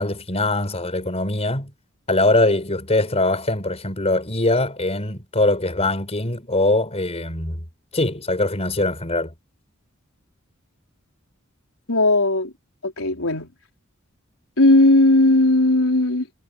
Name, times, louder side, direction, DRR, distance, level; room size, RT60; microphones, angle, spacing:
voice 1, 0.0-1.7 2.1-7.6 7.9-9.3, left 2 dB, 30° left, 5.1 m, -22 dB
voice 2, 11.9-12.5 12.8-13.5 14.6-16.3, left 2 dB, 80° left, 4.2 m, -17 dB
head